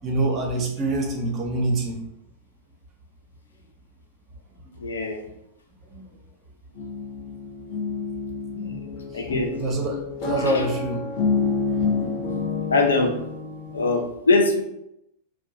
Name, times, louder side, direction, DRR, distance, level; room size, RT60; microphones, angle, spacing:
voice 1, 0.0-2.0 4.7-4.8 5.9-6.0 8.6-9.0 9.6-11.0, right 2 dB, 30° right, 1 dB, 0.6 m, -26 dB
voice 2, 4.8-5.2 9.1-9.5 10.4-10.6 12.0-12.1 12.7-13.1 13.7-14.6, left 3 dB, 70° left, 3 dB, 0.4 m, -22 dB
sound 1, 6.7-13.9, left 4 dB, 45° left, 0.9 m, -28 dB
2.5 x 2.2 x 2.7 m, 0.81 s
figure-of-eight pair, 90°, 0 cm